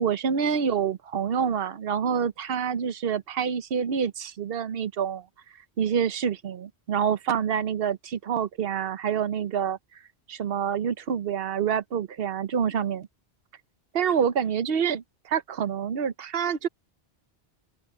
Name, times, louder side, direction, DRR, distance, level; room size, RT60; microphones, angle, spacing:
voice 1, 0.0-5.2 5.8-9.8 10.3-13.1 13.9-16.7, right 7 dB, 65° right, 1.1 m, -27 dB
open air
omnidirectional pair, 1.0 m